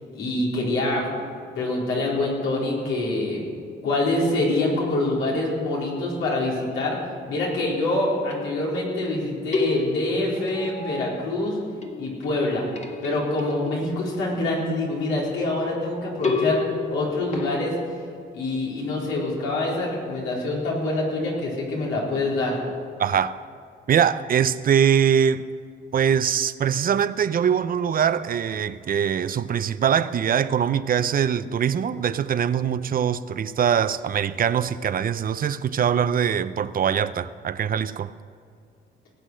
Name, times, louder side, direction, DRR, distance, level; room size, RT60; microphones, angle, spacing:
voice 1, 0.1-1.1 1.5-3.4 3.8-7.0 7.3-11.6 12.0-12.7 13.0-16.6 16.9-17.8 18.3-22.6, left 2 dB, 90° left, 4.3 m, -25 dB
sound 1, 8.2-9.1 9.5-11.5 11.8-14.8 16.2-17.9, left 3 dB, 35° left, 1.8 m, -31 dB
voice 2, 23.0-23.4 23.9-25.4 25.9-38.1, right 8 dB, 45° right, 0.6 m, -22 dB
18.5 x 8.2 x 6.4 m
cardioid pair, 90°, 20 cm